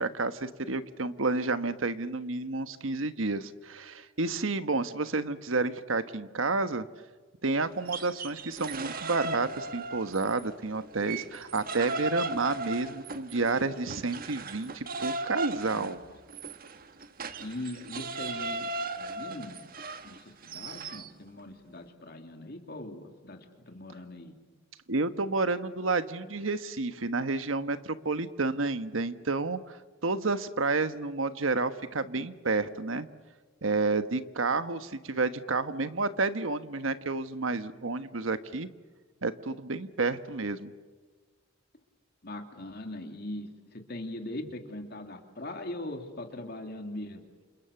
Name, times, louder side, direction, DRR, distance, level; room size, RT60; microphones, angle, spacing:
voice 1, 0.0-6.9 7.4-16.0 24.9-33.1 33.6-38.7 39.2-40.7, right 3 dB, 80° right, 11 dB, 1.3 m, -30 dB
sound 1, 7.7-10.5 10.8-21.1, right 3 dB, 45° right, 1.4 m, -37 dB
voice 2, 15.7-16.1 17.4-18.7 19.0-19.6 20.0-24.3 42.2-47.3, left 1 dB, 50° left, 4 dB, 2.8 m, -41 dB
29.5 x 27.0 x 7.1 m, 1.4 s
head